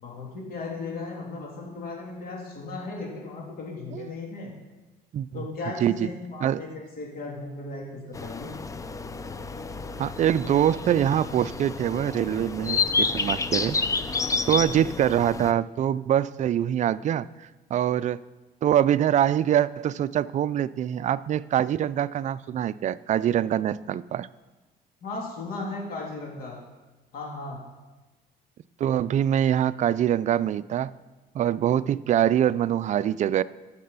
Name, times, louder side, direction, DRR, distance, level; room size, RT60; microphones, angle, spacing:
voice 1, 0.0-4.5 5.3-8.5 25.0-26.6 27.1-27.6, left 3 dB, 60° left, -1 dB, 3.2 m, -36 dB
sound 1, 8.1-15.5, left 4 dB, 20° left, 0.5 m, -30 dB
voice 2, 10.0-13.8 14.5-18.2 18.6-24.3 28.8-30.9 31.3-33.4, right 10 dB, 45° right, 16 dB, 0.4 m, -24 dB
14.0 x 6.8 x 5.6 m, 1.2 s
cardioid pair, 110°, 17 cm